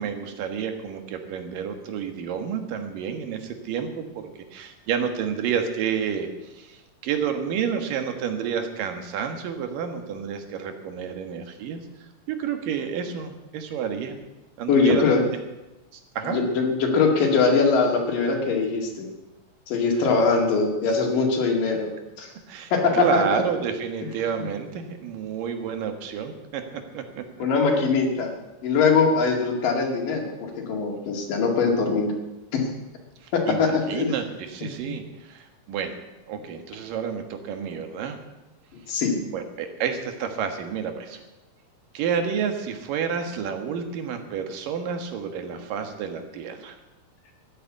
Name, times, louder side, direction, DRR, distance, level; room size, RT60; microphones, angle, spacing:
voice 1, 0.0-4.1 4.5-6.3 6.5-11.8 12.3-14.2 14.6-15.0 15.3-15.4 15.9-16.4 19.9-20.1 22.5-27.2 33.2-36.0 36.3-38.2 39.3-41.2 41.9-46.8, right 7 dB, 80° right, 6 dB, 3.1 m, -30 dB
voice 2, 14.7-15.2 16.2-19.1 19.7-21.9 22.2-22.3 22.7-23.4 27.4-28.3 28.6-32.1 32.5-32.7 33.3-34.1 38.9-39.2, left 4 dB, 75° left, 2 dB, 3.8 m, -22 dB
13.5 x 10.0 x 8.3 m, 1.0 s
omnidirectional pair, 3.9 m